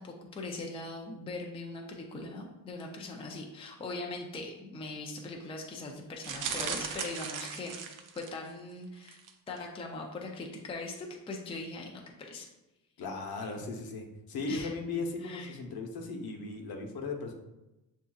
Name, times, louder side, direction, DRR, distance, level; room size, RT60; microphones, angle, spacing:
voice 1, 0.0-9.2 9.5-12.5 14.5-14.7 15.2-15.6, left 2 dB, 15° left, 1 dB, 0.4 m, -41 dB
sound 1, 6.2-8.5 9.0-9.3 9.6-9.7, right 6 dB, 60° right, 0.6 m, -37 dB
voice 2, 13.0-17.3, left 3 dB, 85° left, 2 dB, 0.9 m, -37 dB
7.3 x 2.7 x 2.3 m, 0.98 s
wide cardioid pair, 175°, 36 cm